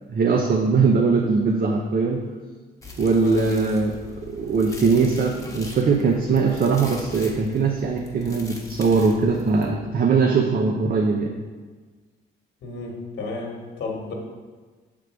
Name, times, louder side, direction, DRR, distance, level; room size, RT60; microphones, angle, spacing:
voice 1, 0.1-2.2 3.0-4.0 4.3-11.3, right 4 dB, 45° right, 1 dB, 0.7 m, -21 dB
sound 1, 2.8-9.7, left 3 dB, 15° left, 1.1 m, -41 dB
voice 2, 3.1-3.7 12.6-14.1, left 3 dB, 60° left, 0 dB, 1.3 m, -33 dB
6.7 x 3.7 x 4.6 m, 1.4 s
cardioid pair, 90°, 20 cm